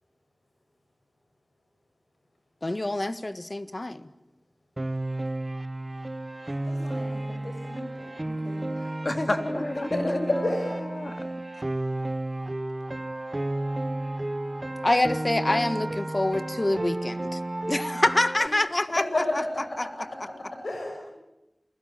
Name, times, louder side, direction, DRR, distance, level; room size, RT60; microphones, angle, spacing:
voice 1, 2.6-4.1 9.2-9.3 9.8-10.2 14.8-17.4 17.7-19.0, left 1 dB, 45° left, 11 dB, 1.7 m, -26 dB
Piano, 4.8-18.5, right 1 dB, 40° right, 1.0 m, -32 dB
voice 2, 6.6-8.9 9.9-10.7 11.1-11.2 18.4-18.5 19.0-21.1, left 2 dB, 90° left, 1 dB, 6.5 m, -32 dB
voice 3, 9.0-9.9 10.3-11.3, left 2 dB, 65° left, 5 dB, 3.4 m, -32 dB
29.5 x 22.0 x 9.0 m, 0.96 s
wide cardioid pair, 45°, 0 cm